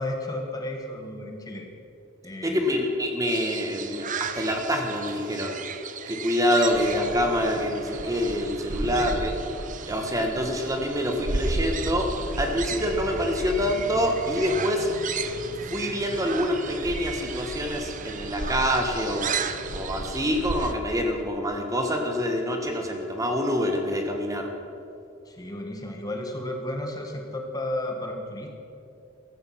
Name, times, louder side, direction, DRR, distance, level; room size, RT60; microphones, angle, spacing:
voice 1, 0.0-1.7 2.2-2.6 8.8-9.2 25.2-28.6, left 1 dB, 20° left, 2 dB, 1.4 m, -33 dB
voice 2, 2.4-5.5 6.1-9.3 9.9-14.9 15.7-24.5, equal, 15° right, 3 dB, 1.5 m, -26 dB
sound 1, 3.2-20.7, right 7 dB, 40° right, 0.7 m, -37 dB
sound 2, 6.7-20.8, right 1 dB, 70° right, 1.2 m, -35 dB
15.0 x 14.5 x 5.8 m, 2.7 s
head